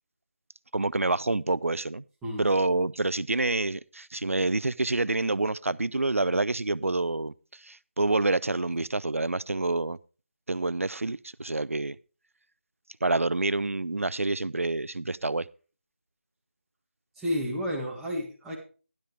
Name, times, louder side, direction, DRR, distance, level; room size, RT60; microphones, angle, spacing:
voice 1, 0.7-2.0 2.4-7.3 7.6-10.0 10.5-12.0 13.0-15.5, right 2 dB, 85° right, 0.5 m, -27 dB
voice 2, 17.2-18.5, equal, 5° right, 1.9 m, -31 dB
12.5 x 11.5 x 3.4 m
figure-of-eight pair, 160°, 7 cm